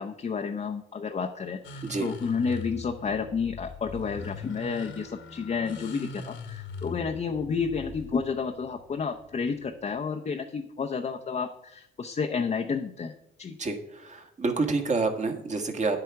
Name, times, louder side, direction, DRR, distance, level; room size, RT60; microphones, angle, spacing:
voice 1, 0.0-13.6, left 5 dB, 35° left, 4 dB, 0.8 m, -31 dB
sound 1, 1.6-10.0, left 4 dB, 75° left, 1.7 m, -42 dB
voice 2, 13.6-16.0, right 3 dB, 35° right, 4 dB, 1.7 m, -28 dB
9.9 x 8.0 x 4.8 m, 0.77 s
cardioid pair, 90°, 20 cm